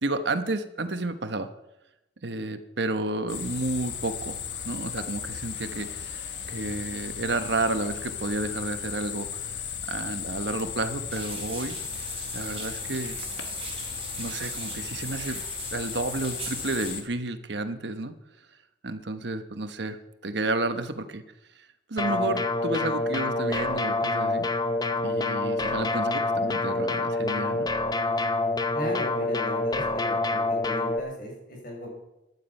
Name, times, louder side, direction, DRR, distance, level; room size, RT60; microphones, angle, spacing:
voice 1, 0.0-1.5 2.2-4.4 4.6-11.8 12.3-13.2 14.2-15.4 15.7-18.2 18.8-21.2 21.9-24.5 25.0-27.7, right 2 dB, 70° right, 9 dB, 1.1 m, -31 dB
sound 1, 3.3-17.0, left 8 dB, 80° left, 1.3 m, -36 dB
sound 2, 11.1-16.9, right 5 dB, 30° right, 3.6 m, -40 dB
sound 3, 22.0-31.0, left 2 dB, 20° left, 0.7 m, -27 dB
voice 2, 28.7-31.9, left 1 dB, 50° left, -1 dB, 5.4 m, -36 dB
15.0 x 11.0 x 5.5 m, 0.92 s
head